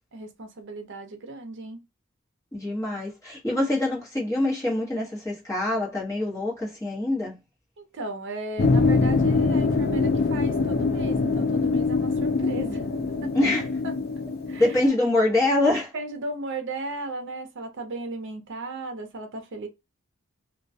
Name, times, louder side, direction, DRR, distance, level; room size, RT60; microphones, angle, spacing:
voice 1, 0.1-1.8 3.5-3.7 7.8-12.8 13.2-13.3 13.8-13.9 14.5-14.7 15.9-19.7, right 2 dB, 60° right, 0.6 m, -36 dB
voice 2, 2.5-7.4 13.3-13.7 14.6-15.9, left 2 dB, 15° left, 0.9 m, -24 dB
sound 1, 8.6-14.9, left 3 dB, 50° left, 0.4 m, -24 dB
2.3 x 2.1 x 2.6 m
head